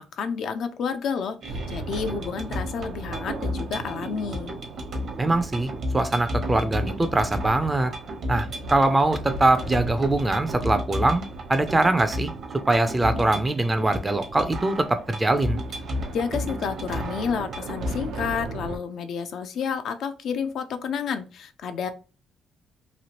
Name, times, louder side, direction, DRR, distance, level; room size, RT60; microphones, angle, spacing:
voice 1, 0.0-4.5 16.1-21.9, left 6 dB, 70° left, 8 dB, 0.4 m, -30 dB
sound 1, 1.4-17.9, equal, 55° right, 0.9 m, -34 dB
sound 2, 1.5-18.8, right 2 dB, 80° right, 0.5 m, -37 dB
voice 2, 5.2-7.9 8.3-11.2 11.5-12.3 12.7-15.6, right 2 dB, 20° right, 10 dB, 0.4 m, -22 dB
3.0 x 2.4 x 2.8 m, 0.33 s
cardioid pair, 90°, 0 cm